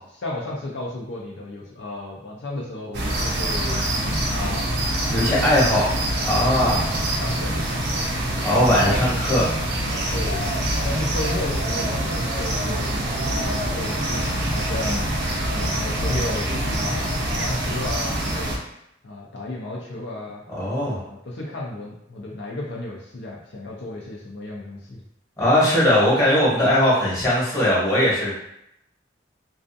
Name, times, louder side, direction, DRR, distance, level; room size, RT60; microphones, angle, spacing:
voice 1, 0.1-3.8 4.3-4.7 5.0-5.5 7.2-8.0 8.5-9.0 10.1-10.5 10.8-15.1 15.5-18.6 19.0-20.4 20.9-25.0, left 2 dB, 65° left, -3 dB, 0.5 m, -33 dB
sound 1, 2.9-18.6, right 1 dB, 60° right, 0.5 m, -25 dB
voice 2, 5.1-5.8 6.2-6.8 8.4-9.4 20.5-21.0 25.4-28.3, left 1 dB, 15° left, -8 dB, 1.0 m, -19 dB
2.4 x 2.4 x 2.5 m, 0.77 s
head